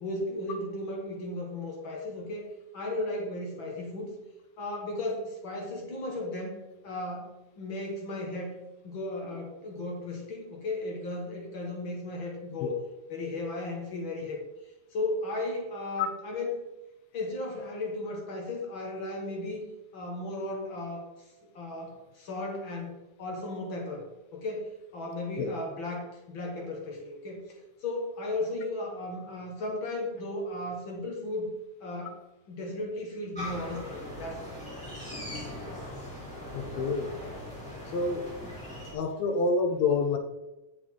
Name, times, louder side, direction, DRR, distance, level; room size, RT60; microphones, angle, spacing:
voice 1, 0.0-2.5 2.7-4.1 4.6-8.5 8.8-12.8 13.1-14.4 14.9-16.6 17.1-19.6 19.9-21.0 21.6-22.9 23.2-24.0 24.3-27.4 27.8-31.5 31.8-32.2 32.5-34.6, left 2 dB, 50° left, 0 dB, 1.9 m, -35 dB
sound 1, 33.3-38.9, left 1 dB, ahead, 2.6 m, -40 dB
voice 2, 36.5-37.1 37.9-38.3 38.9-40.2, left 4 dB, 75° left, 5 dB, 2.0 m, -27 dB
8.0 x 7.6 x 3.7 m, 0.97 s
omnidirectional pair, 3.3 m